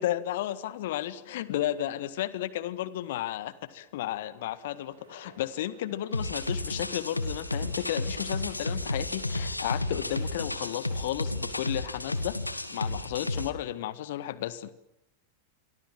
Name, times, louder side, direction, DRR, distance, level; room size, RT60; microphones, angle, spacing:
voice 1, 0.0-14.7, left 13 dB, 55° left, 15 dB, 1.6 m, -33 dB
sound 1, 4.6-11.1, right 3 dB, 70° right, 7.5 m, -56 dB
sound 2, 6.1-13.5, left 2 dB, 85° left, 2.0 m, -32 dB
28.0 x 24.0 x 7.6 m, 0.82 s
figure-of-eight pair, 90°, 0 cm